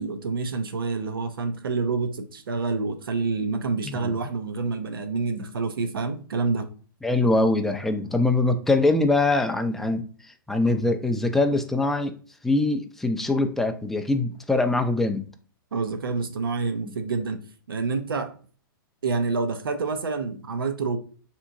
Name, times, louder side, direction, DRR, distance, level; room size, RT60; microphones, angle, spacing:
voice 1, 0.0-6.7 15.7-17.4 17.7-18.3 19.0-21.0, right 4 dB, 80° right, 0.6 m, -27 dB
voice 2, 3.9-4.2 7.0-10.1 10.5-12.1 12.4-15.2 16.9-17.0, left 2 dB, 5° left, 0.3 m, -23 dB
3.5 x 2.9 x 2.5 m
hypercardioid pair, 115°, 12 cm